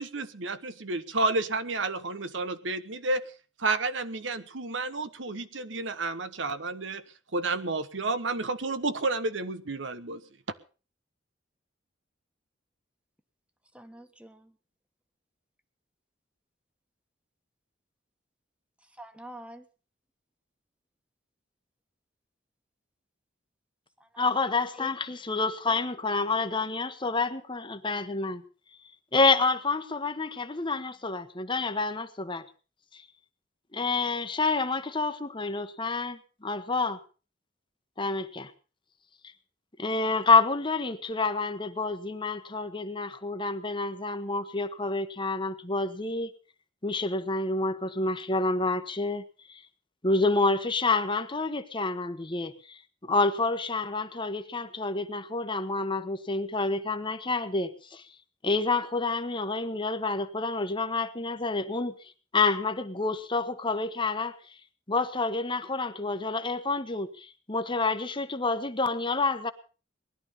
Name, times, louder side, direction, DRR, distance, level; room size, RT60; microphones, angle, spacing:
voice 1, 0.0-3.2 3.6-7.0 7.3-10.2, right 3 dB, 80° right, 1.2 m, -31 dB
voice 2, 13.7-14.5 18.8-19.7 24.0-24.5 24.8-25.0, right 1 dB, 5° right, 1.5 m, -46 dB
voice 3, 24.2-28.4 29.1-32.5 32.9-33.0 33.7-37.0 38.0-38.5 39.8-46.3 46.8-49.2 49.5-49.6 50.0-58.0 58.4-62.0 62.3-64.4 64.9-69.5, left 3 dB, 25° left, 1.2 m, -28 dB
19.5 x 11.5 x 5.6 m
head